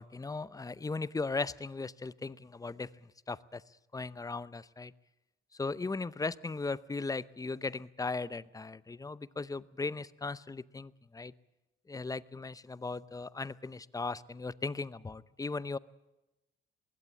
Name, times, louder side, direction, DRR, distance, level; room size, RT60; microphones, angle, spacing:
voice 1, 0.0-3.6 3.9-4.9 5.6-11.3 11.9-15.8, left 3 dB, 15° left, 18 dB, 0.7 m, -37 dB
22.0 x 16.5 x 8.8 m, 0.96 s
cardioid pair, 90°, 20 cm